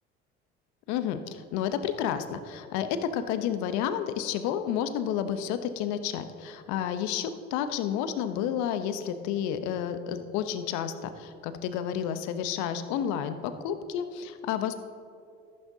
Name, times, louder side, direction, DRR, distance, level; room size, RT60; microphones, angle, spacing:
voice 1, 0.9-14.7, left 9 dB, 65° left, 10 dB, 0.9 m, -31 dB
13.5 x 12.0 x 2.8 m, 2.5 s
hypercardioid pair, 70°, 31 cm